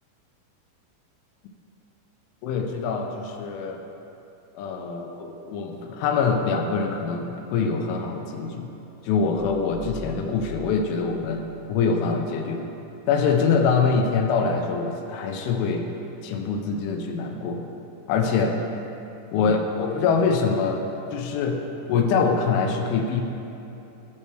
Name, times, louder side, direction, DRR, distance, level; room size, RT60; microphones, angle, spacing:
voice 1, 2.4-3.8 4.5-8.7 9.0-11.4 11.7-12.7 13.1-15.9 16.2-17.6 18.1-18.6 19.3-20.8 21.1-21.6 21.9-23.2, left 5 dB, 90° left, 3 dB, 3.1 m, -24 dB
sound 1, 9.6-12.2, left 3 dB, 90° right, 3.4 m, -43 dB
13.0 x 5.5 x 3.2 m, 2.9 s
omnidirectional pair, 5.5 m